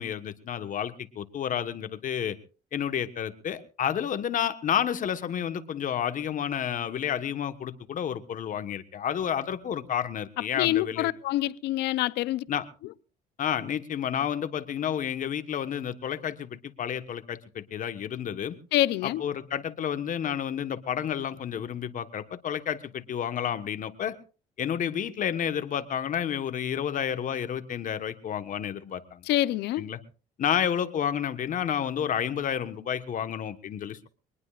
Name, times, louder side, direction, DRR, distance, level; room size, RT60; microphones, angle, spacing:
voice 1, 0.0-2.4 2.7-11.1 12.5-12.6 13.4-18.6 19.0-24.2 24.6-29.2 29.8-30.0 30.4-34.1, left 9 dB, 50° left, 1.3 m, -30 dB
voice 2, 10.6-12.4 18.7-19.2 29.3-29.8, left 14 dB, 80° left, 0.7 m, -26 dB
23.5 x 20.0 x 2.5 m
cardioid pair, 110°, 17 cm